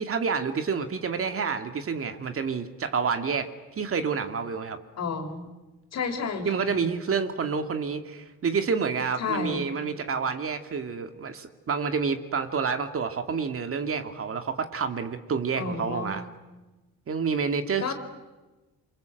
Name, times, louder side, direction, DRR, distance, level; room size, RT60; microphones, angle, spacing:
voice 1, 0.0-3.5 3.8-4.8 6.4-16.2 17.1-17.9, right 5 dB, 45° right, 7 dB, 2.3 m, -28 dB
voice 2, 5.0-5.4 5.9-6.8 9.2-9.6 15.6-16.2 17.8-17.9, left 5 dB, 60° left, 6 dB, 4.1 m, -31 dB
27.5 x 24.0 x 7.9 m, 1.1 s
cardioid pair, 90°, 30 cm